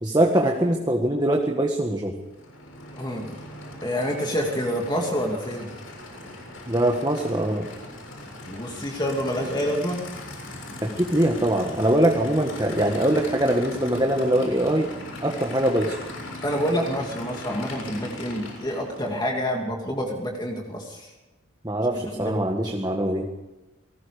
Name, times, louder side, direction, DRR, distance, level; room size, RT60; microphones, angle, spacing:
voice 1, 0.0-2.1 6.7-7.7 10.8-14.9 15.2-16.0 21.6-23.2, right 1 dB, 20° right, 2 dB, 1.7 m, -22 dB
Aircraft / Idling, 2.2-19.2, left 1 dB, 70° left, 7.3 m, -39 dB
voice 2, 2.9-3.4 3.8-5.7 8.5-10.0 16.4-21.1 21.9-22.4, equal, 20° left, 0 dB, 2.5 m, -28 dB
27.5 x 19.5 x 5.1 m, 1.1 s
head